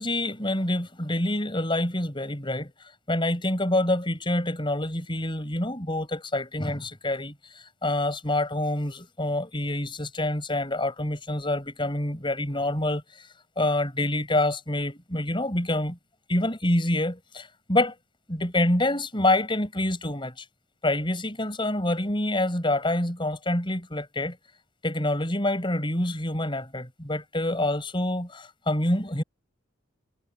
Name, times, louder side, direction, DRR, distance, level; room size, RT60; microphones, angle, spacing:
voice 1, 0.0-2.7 3.1-13.0 13.6-16.0 16.3-17.9 18.3-20.5 20.8-24.4 24.8-29.2, left 1 dB, 25° left, 5.8 m, -27 dB
head